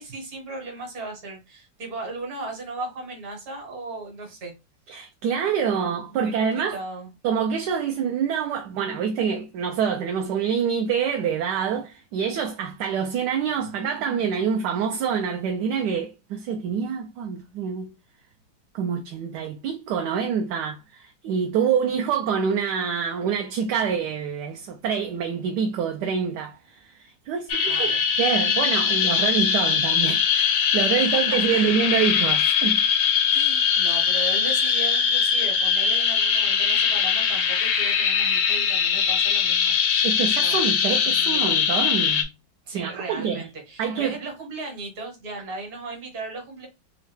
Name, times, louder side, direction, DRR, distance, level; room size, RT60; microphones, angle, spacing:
voice 1, 0.0-4.5 5.7-5.8 6.1-7.1 27.7-28.6 31.0-31.2 31.5-31.8 33.3-40.1 40.3-40.6 41.0-41.6 42.6-46.7, right 3 dB, 60° right, 1.6 m, -36 dB
voice 2, 4.9-6.8 7.2-17.9 18.7-27.9 28.2-32.8 40.0-42.3 42.7-43.4 43.8-44.2, right 7 dB, 75° right, 1.1 m, -26 dB
sound 1, 27.5-42.2, left 7 dB, 75° left, 1.2 m, -21 dB
3.6 x 2.1 x 3.3 m
omnidirectional pair, 1.9 m